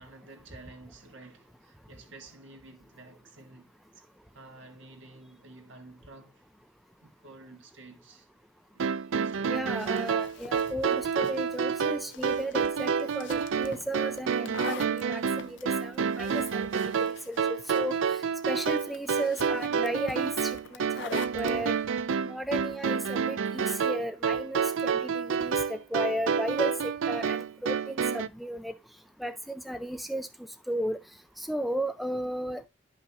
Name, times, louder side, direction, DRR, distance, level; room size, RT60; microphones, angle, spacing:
voice 1, 0.0-4.0 4.3-6.4 7.0-8.3 9.2-10.1 22.5-22.6, right 2 dB, 70° right, 1.8 m, -51 dB
sound 1, 8.8-28.3, right 6 dB, 85° right, 0.5 m, -29 dB
sound 2, 9.2-21.6, left 6 dB, 65° left, 0.6 m, -46 dB
voice 2, 9.5-16.7 17.3-18.2 18.5-21.8 22.2-28.7 29.2-30.3 30.7-31.0 31.4-32.7, right 1 dB, ahead, 0.4 m, -34 dB
11.0 x 5.5 x 2.9 m
head